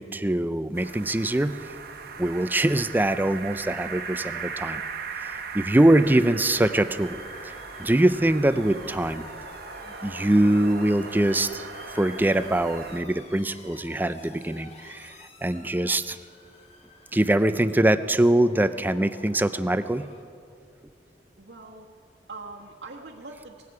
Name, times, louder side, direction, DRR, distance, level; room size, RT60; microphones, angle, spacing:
voice 1, 0.0-1.6 2.2-4.8 5.2-7.2 7.4-9.2 10.0-11.7 11.9-15.1 15.4-16.2 17.1-20.1, right 1 dB, 10° right, 13 dB, 0.4 m, -23 dB
sound 1, 0.7-13.0, right 5 dB, 60° right, 1.2 m, -38 dB
Motor vehicle (road) / Siren, 5.7-20.2, left 2 dB, 35° left, 1.9 m, -50 dB
voice 2, 21.4-21.9 22.3-23.6, right 3 dB, 85° right, -3 dB, 1.4 m, -42 dB
19.0 x 16.0 x 4.8 m, 2.3 s
head